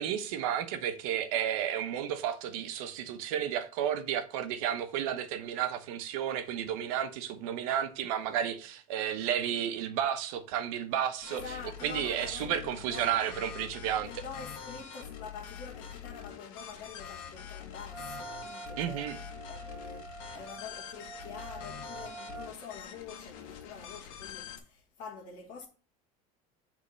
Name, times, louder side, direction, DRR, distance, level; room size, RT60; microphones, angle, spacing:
voice 1, 0.0-11.4 11.8-14.1 18.8-19.1, right 10 dB, 70° right, 1.0 m, -32 dB
sound 1, 11.2-24.6, left 8 dB, 65° left, 1.5 m, -45 dB
voice 2, 11.3-13.2 14.0-25.7, left 5 dB, 40° left, 1.6 m, -46 dB
Wind instrument woodwind instrument, 17.9-22.5, right 5 dB, 5° right, 0.6 m, -46 dB
8.3 x 3.7 x 5.5 m
cardioid pair, 175°, 19 cm